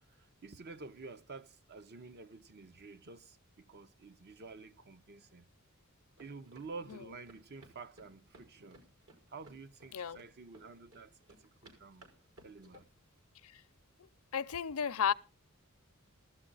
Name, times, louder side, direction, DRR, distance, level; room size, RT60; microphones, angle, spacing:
voice 1, 0.2-5.5 6.2-8.9 9.3-12.1 12.4-12.9, right 4 dB, 50° right, 0.8 m, -50 dB
sound 1, 6.2-12.8, right 2 dB, 75° right, 6.1 m, -60 dB
voice 2, 14.3-15.1, left 7 dB, 75° left, 0.6 m, -33 dB
16.0 x 13.0 x 4.0 m
head